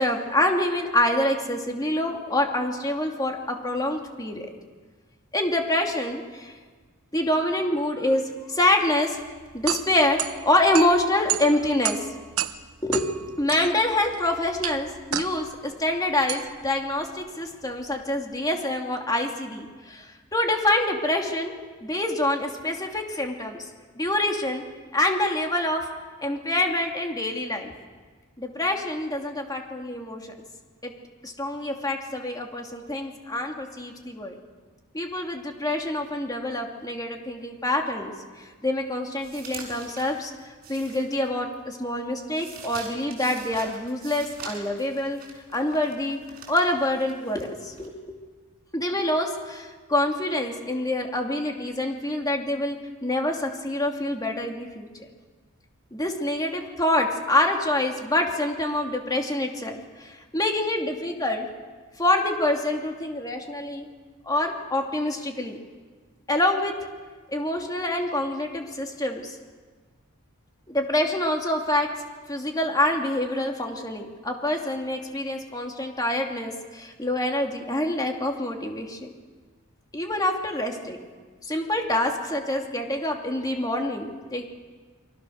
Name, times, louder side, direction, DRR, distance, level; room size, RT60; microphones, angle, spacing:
voice 1, 0.0-4.5 5.3-6.6 7.1-9.2 9.5-12.1 12.8-13.1 13.4-21.5 21.8-23.6 23.9-24.6 24.9-25.9 26.2-27.7 28.4-30.3 30.8-30.9 31.2-34.4 34.9-38.1 38.4-40.3 40.7-45.2 45.5-46.2 46.5-48.2 48.7-52.8 53.0-54.9 55.9-61.5 62.0-63.9 64.2-65.6 66.3-66.7 67.3-69.4 70.7-71.9 72.3-79.1 79.9-81.1 81.4-84.5, left 1 dB, 15° left, 2 dB, 2.7 m, -26 dB
sound 1, 9.2-18.3, right 10 dB, 75° right, 1.1 m, -33 dB
sound 2, 39.2-41.6 41.9-47.9, right 5 dB, 45° right, 6.5 m, -44 dB
29.0 x 24.5 x 6.5 m, 1.4 s
head